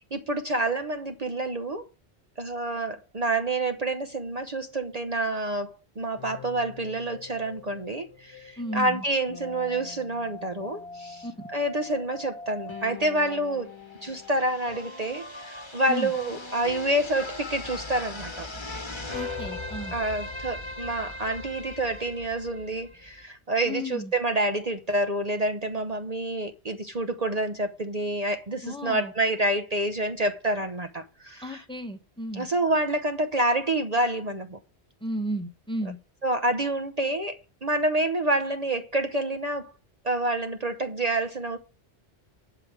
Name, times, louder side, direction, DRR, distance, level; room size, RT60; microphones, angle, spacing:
voice 1, 0.0-1.8 2.4-11.3 11.5-13.7 14.0-18.5 19.9-31.6 32.3-34.6 36.2-39.7 40.0-41.6, right 1 dB, 40° right, 0.9 m, -28 dB
sound 1, 6.2-23.2, left 3 dB, 25° left, 1.3 m, -40 dB
voice 2, 8.6-9.0 11.2-11.3 15.9-16.1 19.1-19.9 23.6-24.1 28.6-29.1 31.4-32.5 35.0-36.0, equal, 5° left, 1.0 m, -33 dB
11.5 x 5.1 x 7.5 m
omnidirectional pair, 1.1 m